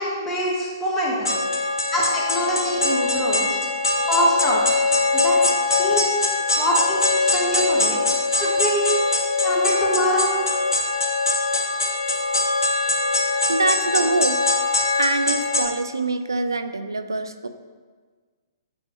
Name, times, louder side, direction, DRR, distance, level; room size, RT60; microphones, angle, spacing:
voice 1, 0.0-1.3 1.9-3.6 4.1-4.8 5.1-5.4 5.7-6.1 6.6-8.0 8.4-8.8 9.4-10.3, equal, 15° left, -4 dB, 1.5 m, -24 dB
sound 1, 1.3-15.7, left 3 dB, 75° left, 1.0 m, -22 dB
voice 2, 13.5-14.4 15.0-17.5, right 2 dB, 80° right, 9 dB, 0.5 m, -24 dB
8.6 x 4.5 x 3.1 m, 1.5 s
figure-of-eight pair, 125°, 2 cm